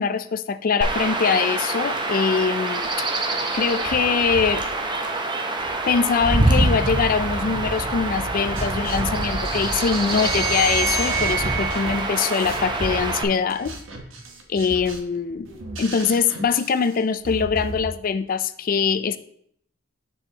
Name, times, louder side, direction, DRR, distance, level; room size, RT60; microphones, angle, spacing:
voice 1, 0.0-3.1 3.5-4.7 5.9-13.8 14.5-15.5 15.8-19.2, left 6 dB, 45° left, 11 dB, 0.3 m, -23 dB
Chirp tweet / Wind / Stream, 0.8-13.2, right 2 dB, 20° right, 0.7 m, -25 dB
sound 1, 8.3-17.9, right 2 dB, 70° right, 1.1 m, -37 dB
sound 2, 9.9-13.2, right 4 dB, 20° left, 3.0 m, -28 dB
7.0 x 7.0 x 2.8 m, 0.67 s
head